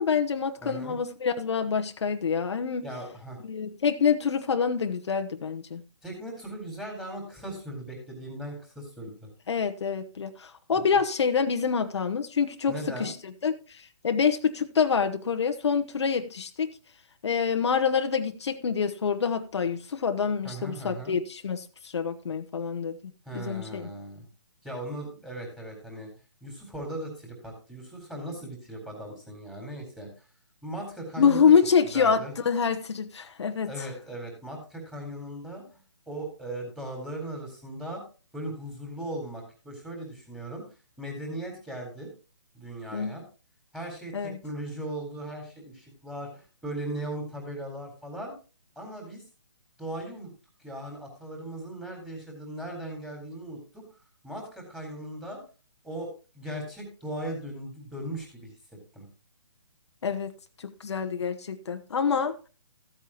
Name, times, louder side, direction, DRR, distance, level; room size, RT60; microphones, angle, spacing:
voice 1, 0.0-2.8 3.4-5.8 9.5-13.1 13.4-16.7 17.2-23.0 23.3-23.9 31.2-33.7 42.9-43.1 44.1-44.4 60.0-60.3 60.6-62.4, left 6 dB, 65° left, 1.1 m, -26 dB
voice 2, 0.6-1.0 2.8-3.4 6.0-9.3 10.8-10.9 12.7-13.1 20.4-21.1 23.3-24.2 24.6-26.1 26.4-30.1 30.6-31.5 31.9-32.3 33.7-35.8 36.1-38.0 38.3-40.6 41.0-42.1 42.5-43.2 43.7-48.3 48.8-49.2 49.8-50.3 50.6-54.0 54.2-55.4 55.8-56.1 56.3-58.5 58.9-59.1, right 1 dB, ahead, 4.2 m, -38 dB
15.0 x 8.6 x 3.0 m
hypercardioid pair, 150°, 15 cm